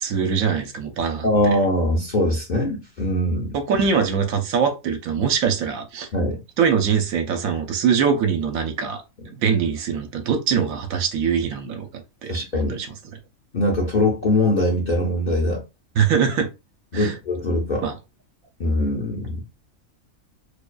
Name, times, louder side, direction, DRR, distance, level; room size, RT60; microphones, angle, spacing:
voice 1, 0.0-1.5 3.5-6.1 6.6-9.0 9.3-11.9 12.2-12.9 16.0-16.5 16.9-17.2 17.8-17.9, right 6 dB, 85° right, 1.0 m, -22 dB
voice 2, 1.2-3.5 6.1-6.4 12.3-12.8 13.5-15.6 16.9-17.8 18.6-19.4, left 1 dB, 50° left, 0.6 m, -22 dB
2.5 x 2.3 x 2.2 m
omnidirectional pair, 1.4 m